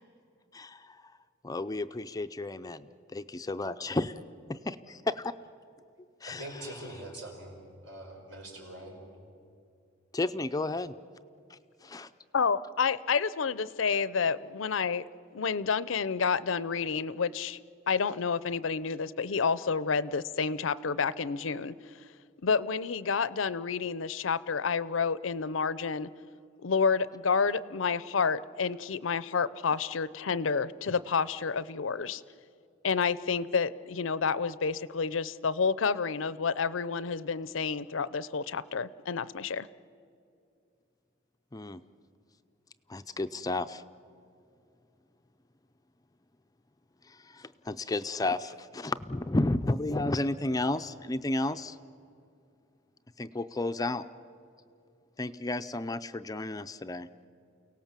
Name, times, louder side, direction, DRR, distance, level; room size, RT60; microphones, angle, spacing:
voice 1, 0.5-1.1 1.4-3.2 3.5-4.1 6.2-6.5 10.1-10.9 11.5-12.1 41.5-41.8 42.9-43.8 47.1-51.8 53.2-54.1 55.2-57.1, left 2 dB, 20° left, 10 dB, 0.5 m, -32 dB
voice 2, 6.3-7.6 7.8-9.0, right 1 dB, 75° right, 1 dB, 5.3 m, -43 dB
voice 3, 12.3-15.0 15.3-17.6 17.9-21.7 22.4-26.1 26.6-32.2 32.8-39.7, left 5 dB, 75° left, 17 dB, 0.6 m, -29 dB
30.0 x 18.0 x 7.4 m, 2.5 s
head